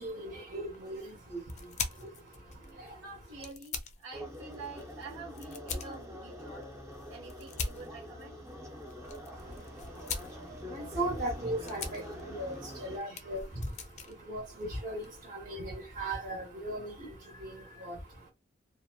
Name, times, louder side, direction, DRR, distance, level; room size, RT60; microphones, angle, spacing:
voice 1, 0.0-3.1 9.3-18.3, right 1 dB, 45° right, 1.3 m, -39 dB
sound 1, 0.7-15.2, left 5 dB, 40° left, 0.4 m, -44 dB
voice 2, 2.9-6.7 7.1-8.4 13.1-13.2, right 4 dB, 90° right, 1.0 m, -47 dB
sound 2, 4.1-13.0, equal, 15° right, 0.6 m, -45 dB
2.9 x 2.1 x 2.3 m
head